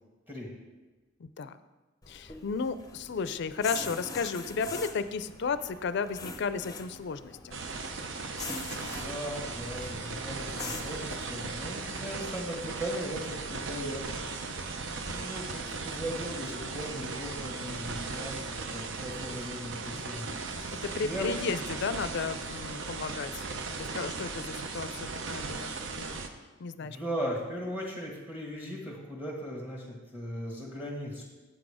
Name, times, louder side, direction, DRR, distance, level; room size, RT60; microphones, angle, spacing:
voice 1, 1.2-1.6 2.1-7.6 20.8-26.2 26.6-27.0, left 5 dB, 60° left, 13 dB, 0.4 m, -34 dB
sound 1, 2.0-11.2, left 4 dB, 20° left, 0.6 m, -43 dB
sound 2, 7.5-26.3, right 4 dB, 65° right, 0.7 m, -37 dB
voice 2, 8.8-14.5 14.9-20.3 20.6-21.5 22.1-22.2 26.7-31.2, equal, 10° right, -2 dB, 1.5 m, -38 dB
7.9 x 6.1 x 4.9 m, 1.2 s
head